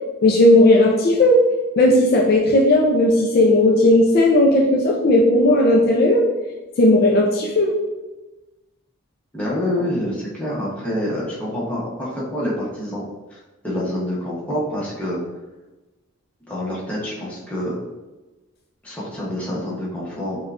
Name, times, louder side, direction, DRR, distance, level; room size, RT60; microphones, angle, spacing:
voice 1, 0.2-1.4 1.8-6.2 6.8-7.7, left 1 dB, 45° left, 0 dB, 0.4 m, -15 dB
voice 2, 9.3-13.0 13.3-13.4 13.6-15.2 16.5-17.8 18.8-20.4, left 1 dB, 5° left, -7 dB, 0.9 m, -26 dB
5.3 x 2.3 x 2.4 m, 1.1 s
head